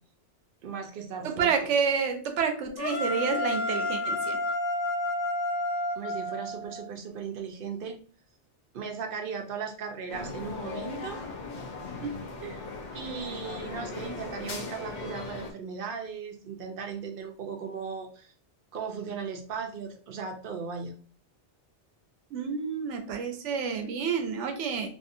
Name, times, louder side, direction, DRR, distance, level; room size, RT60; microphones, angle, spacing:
voice 1, 0.6-1.7 6.0-8.0 8.7-11.2 12.9-18.3 18.7-20.9, right 6 dB, 60° right, 4 dB, 0.7 m, -37 dB
voice 2, 1.2-4.4 12.0-12.6 22.3-24.9, right 6 dB, 90° right, 5 dB, 1.0 m, -29 dB
sound 1, 2.8-6.9, left 1 dB, 80° left, 1.2 m, -30 dB
sound 2, 10.1-15.5, left 3 dB, 50° left, 0.6 m, -38 dB
2.6 x 2.6 x 2.5 m, 0.41 s
omnidirectional pair, 1.2 m